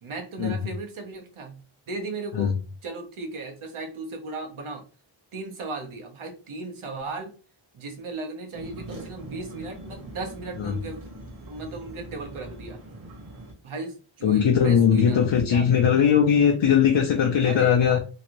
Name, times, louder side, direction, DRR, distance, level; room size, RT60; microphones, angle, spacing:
voice 1, 0.0-2.5 2.8-4.8 5.3-7.3 7.7-11.0 11.5-12.8 13.6-15.6 17.4-18.0, right 3 dB, 85° right, 3 dB, 1.0 m, -36 dB
sound 1, 8.5-13.5, right 1 dB, 45° right, 1.0 m, -42 dB
voice 2, 14.2-18.0, left 8 dB, 65° left, 2 dB, 0.6 m, -20 dB
3.1 x 2.6 x 2.9 m, 0.34 s
wide cardioid pair, 80°, 48 cm